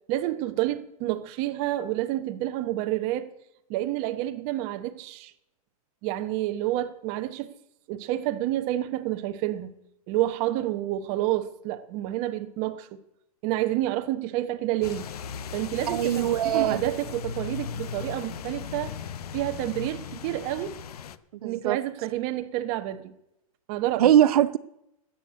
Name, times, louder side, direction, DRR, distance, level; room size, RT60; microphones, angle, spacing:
voice 1, 0.1-3.3 3.7-5.3 6.0-7.5 7.9-9.7 10.1-12.9 13.4-15.1 15.5-18.9 19.3-20.8 21.4-23.1 23.7-24.2, right 14 dB, 35° right, 1.0 m, -29 dB
sound 1, 14.8-21.2, left 7 dB, 85° left, 0.9 m, -37 dB
voice 2, 15.9-16.8 21.4-21.8 24.0-24.6, right 11 dB, 80° right, 0.6 m, -21 dB
14.5 x 8.0 x 8.1 m
supercardioid pair, 155°, 19 cm